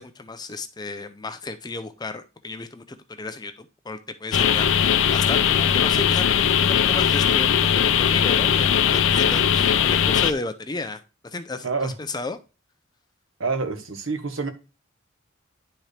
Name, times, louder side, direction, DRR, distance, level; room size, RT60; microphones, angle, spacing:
voice 1, 0.0-12.4, left 3 dB, 20° left, 0.6 m, -33 dB
sound 1, 4.3-10.3, left 8 dB, 70° left, 0.5 m, -19 dB
voice 2, 11.6-11.9 13.4-14.5, right 4 dB, 85° right, 1.2 m, -27 dB
10.5 x 4.4 x 3.3 m
head